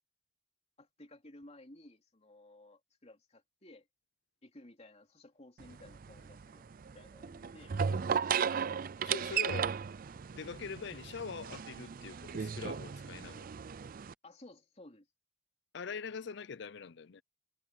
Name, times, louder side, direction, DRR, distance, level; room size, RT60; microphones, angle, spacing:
voice 1, 0.8-3.9 4.4-8.3 14.2-15.1, left 1 dB, 35° left, 3.0 m, -56 dB
sound 1, 5.6-14.1, right 7 dB, 50° right, 0.4 m, -36 dB
voice 2, 9.0-9.7 10.3-13.5 15.7-17.2, left 5 dB, 65° left, 0.6 m, -43 dB
head